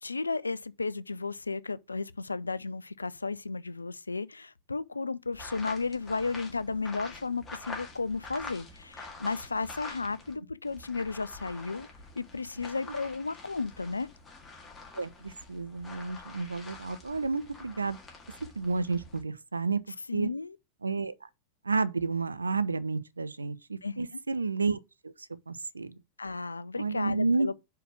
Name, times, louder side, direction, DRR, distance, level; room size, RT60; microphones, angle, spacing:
voice 1, 0.0-11.9 12.2-14.1 20.1-20.6 23.8-24.2 26.2-27.5, left 4 dB, 80° left, 0.3 m, -34 dB
sound 1, 5.3-10.4 10.6-19.2, left 3 dB, 20° left, 1.9 m, -46 dB
voice 2, 15.0-18.0 18.6-19.8 20.1-20.3 20.8-21.1 21.6-24.8 25.0-25.1 25.5-26.0 26.8-27.5, right 4 dB, 80° right, 0.5 m, -31 dB
4.8 x 4.6 x 5.9 m
figure-of-eight pair, 90°, 0 cm